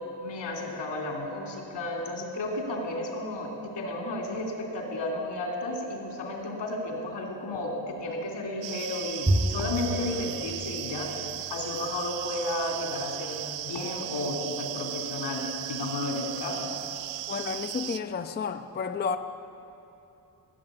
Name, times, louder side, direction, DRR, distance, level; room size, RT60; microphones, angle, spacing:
voice 1, 0.2-11.1 11.5-16.7, left 2 dB, 75° left, 3.0 m, -33 dB
sound 1, 8.6-18.0, right 14 dB, 90° right, 0.5 m, -37 dB
Bowed string instrument, 9.3-11.8, right 1 dB, 10° right, 0.7 m, -30 dB
voice 2, 17.3-19.2, left 5 dB, 25° left, 0.4 m, -31 dB
16.0 x 7.6 x 9.4 m
wide cardioid pair, 140°, 44 cm